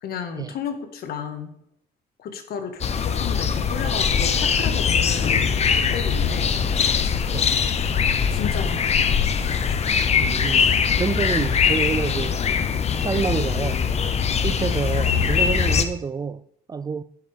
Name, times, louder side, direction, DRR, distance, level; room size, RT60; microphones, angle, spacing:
voice 1, 0.0-1.5 2.2-6.6 8.3-8.8, left 6 dB, 65° left, 1.7 m, -33 dB
sound 1, 2.8-15.8, left 6 dB, 40° left, 0.8 m, -22 dB
voice 2, 10.2-12.4 13.0-13.9 14.4-17.0, right 5 dB, 20° right, 0.4 m, -28 dB
11.5 x 11.0 x 3.6 m
cardioid pair, 110°, 17 cm